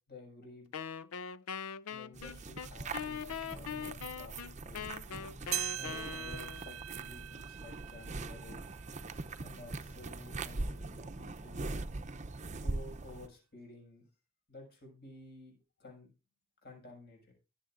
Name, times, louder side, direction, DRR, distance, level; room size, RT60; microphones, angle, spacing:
voice 1, 0.1-0.7 1.9-5.0 5.8-8.8 9.4-11.7 12.5-14.0 14.5-16.1 16.6-17.3, left 2 dB, 50° left, 1 dB, 6.4 m, -53 dB
Wind instrument woodwind instrument, 0.7-6.7, left 7 dB, 90° left, 0.5 m, -42 dB
sound 1, 2.1-13.3, right 3 dB, 35° right, 0.7 m, -42 dB
sound 2, 5.5-10.2 10.7-10.8 11.6-11.7 12.6-12.7, right 14 dB, 75° right, 0.6 m, -42 dB
22.5 x 7.6 x 2.6 m, 0.29 s
head